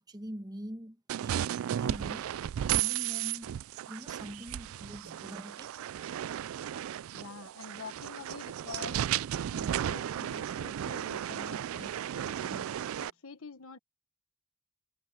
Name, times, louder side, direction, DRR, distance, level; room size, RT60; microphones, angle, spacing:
voice 1, 0.1-3.6 3.9-6.0, equal, 20° right, 1.3 m, -44 dB
sound 1, 1.1-13.1, right 10 dB, 70° right, 0.3 m, -34 dB
voice 2, 7.1-9.1 9.5-12.6 13.0-13.8, left 4 dB, 75° left, 1.3 m, -47 dB
head